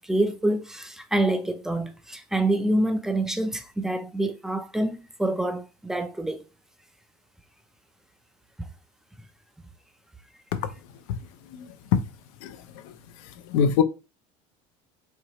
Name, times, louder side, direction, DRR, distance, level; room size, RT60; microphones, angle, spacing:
voice 1, 0.0-6.4, right 1 dB, 5° right, 0.4 m, -26 dB
voice 2, 11.5-12.0 12.4-12.6 12.8-12.9 13.5-13.8, left 7 dB, 90° left, 0.6 m, -24 dB
4.4 x 2.8 x 2.9 m
cardioid pair, 145°, 17 cm